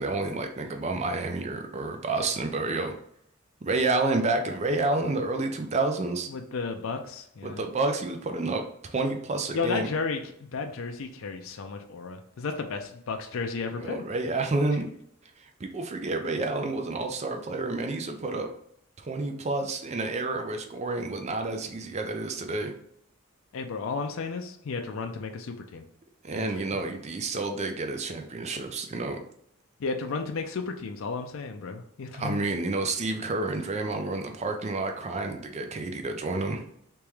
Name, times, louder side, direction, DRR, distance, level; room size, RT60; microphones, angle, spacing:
voice 1, 0.0-2.9 3.6-6.3 7.4-9.9 13.8-14.9 15.4-18.5 19.0-22.7 26.2-29.2 32.2-36.6, right 2 dB, 30° right, 5 dB, 0.4 m, -29 dB
voice 2, 6.3-7.6 9.5-14.0 23.5-25.8 26.3-26.4 29.8-32.4, left 4 dB, 65° left, 4 dB, 0.4 m, -33 dB
3.5 x 2.9 x 3.1 m, 0.70 s
head